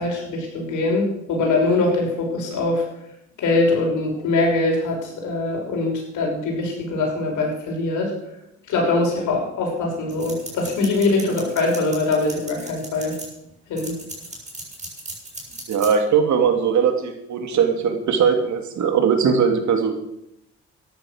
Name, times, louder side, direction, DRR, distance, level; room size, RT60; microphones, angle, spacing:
voice 1, 0.0-2.8 3.4-8.1 8.7-13.1 13.7-14.0, left 2 dB, 80° left, 0 dB, 6.1 m, -22 dB
sound 1, 10.1-13.3 13.8-15.9, right 2 dB, 20° right, 7.1 m, -37 dB
voice 2, 15.7-19.9, right 6 dB, 70° right, 5 dB, 2.8 m, -20 dB
14.0 x 11.0 x 6.4 m, 0.81 s
cardioid pair, 90°, 30 cm